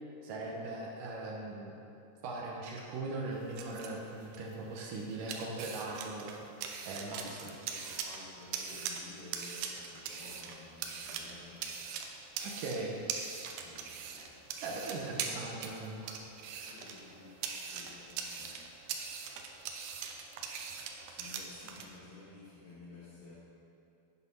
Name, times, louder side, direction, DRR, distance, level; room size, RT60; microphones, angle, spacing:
voice 1, 0.2-1.8 2.2-7.5 12.4-13.0 14.6-16.2, right 2 dB, 70° right, -1 dB, 2.1 m, -40 dB
sound 1, 3.3-21.9, right 6 dB, 90° right, 2.8 m, -42 dB
voice 2, 7.0-11.8 12.0-12.2 13.6-14.5 15.0-15.4 16.6-19.3 21.0-23.4, left 2 dB, 65° left, -7 dB, 2.7 m, -54 dB
sound 2, 15.1-15.7 16.6-16.8, equal, 45° right, 1.8 m, -59 dB
8.5 x 7.8 x 5.4 m, 2.7 s
omnidirectional pair, 4.8 m